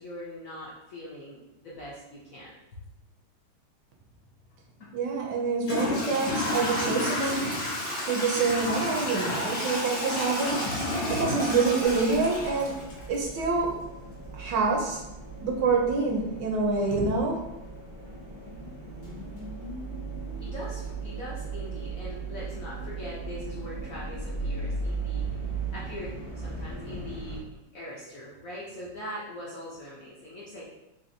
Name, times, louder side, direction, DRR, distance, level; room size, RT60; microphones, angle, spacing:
voice 1, 0.0-2.8 20.4-27.4 27.7-30.7, left 1 dB, 60° left, -7 dB, 0.9 m, -41 dB
Toilet flush / Trickle dribble, 4.8-4.9 5.6-13.4, left 1 dB, 45° left, 1.2 m, -30 dB
voice 2, 4.9-7.5 8.0-10.7 11.1-12.8 13.1-13.7 14.3-15.0 15.4-17.4, right 4 dB, 70° right, 0 dB, 1.2 m, -26 dB
sound 1, 11.8-27.4, right 3 dB, 45° right, 0.8 m, -37 dB
4.1 x 2.9 x 2.6 m, 0.94 s
omnidirectional pair, 2.2 m